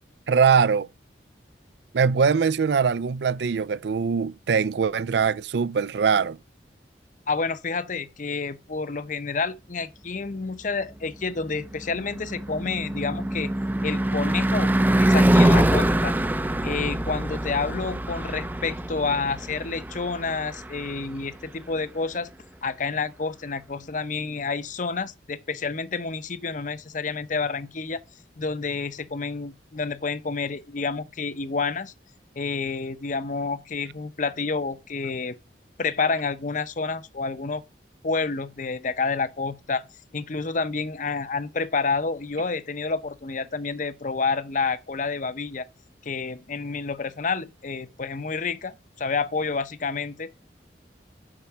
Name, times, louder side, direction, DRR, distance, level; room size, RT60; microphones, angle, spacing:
voice 1, 0.3-0.9 1.9-6.4, right 6 dB, 70° right, 0.4 m, -22 dB
voice 2, 7.3-13.5 13.8-14.7 15.0-16.1 16.6-22.3 22.6-28.0 28.4-31.9 32.4-35.4 35.8-37.6 38.0-39.8 40.1-45.7 46.0-50.3, left 4 dB, 45° left, 0.7 m, -29 dB
Car passing by / Truck / Engine, 11.2-21.5, right 1 dB, 10° right, 0.5 m, -24 dB
7.5 x 5.8 x 5.7 m
head